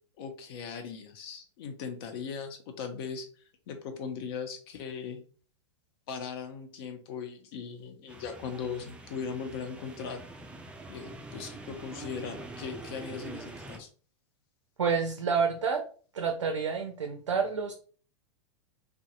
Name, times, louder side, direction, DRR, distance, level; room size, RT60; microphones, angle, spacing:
voice 1, 0.2-5.3 6.1-10.2 10.9-13.9, left 6 dB, 50° left, 6 dB, 0.6 m, -39 dB
sound 1, 8.1-13.8, right 2 dB, 5° right, 0.3 m, -45 dB
voice 2, 14.8-15.8 16.1-17.7, right 5 dB, 80° right, 5 dB, 0.4 m, -28 dB
2.6 x 2.4 x 2.3 m, 0.41 s
figure-of-eight pair, 100°, 15 cm